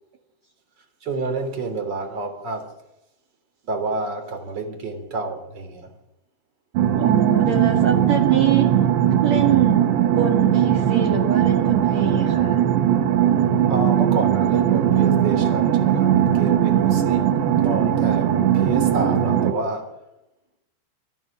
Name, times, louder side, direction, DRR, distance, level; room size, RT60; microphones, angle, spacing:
voice 1, 1.0-2.7 3.7-5.9 13.7-17.3 17.6-19.9, right 3 dB, 25° right, 3.6 m, -29 dB
sound 1, 6.8-19.5, right 10 dB, 80° right, 3.6 m, -19 dB
voice 2, 6.9-8.7 9.2-9.9 10.1-12.6, right 8 dB, 45° right, 3.1 m, -24 dB
25.5 x 15.0 x 7.5 m
omnidirectional pair, 5.0 m